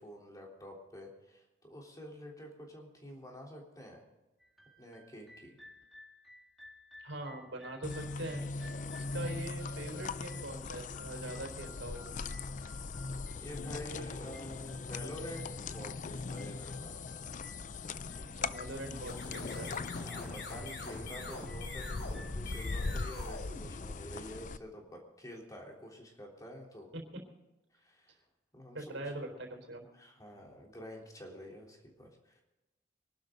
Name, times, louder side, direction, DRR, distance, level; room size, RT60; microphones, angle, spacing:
voice 1, 0.0-4.0 4.8-5.6 13.4-17.0 18.1-18.3 20.0-26.9 27.7-28.2 28.5-29.0 29.9-32.4, equal, 20° left, -1 dB, 3.6 m, -48 dB
sound 1, 4.4-23.1, left 1 dB, ahead, 1.9 m, -58 dB
voice 2, 7.0-8.4 8.9-12.2 18.3-19.7 20.8-21.4 26.9-27.0 28.7-29.9, right 1 dB, 80° right, 3 dB, 3.9 m, -43 dB
sound 2, 7.8-24.6, left 4 dB, 40° left, 0.5 m, -40 dB
sound 3, 18.9-24.4, left 2 dB, 60° left, 3.6 m, -46 dB
24.0 x 12.0 x 3.9 m, 1.0 s
head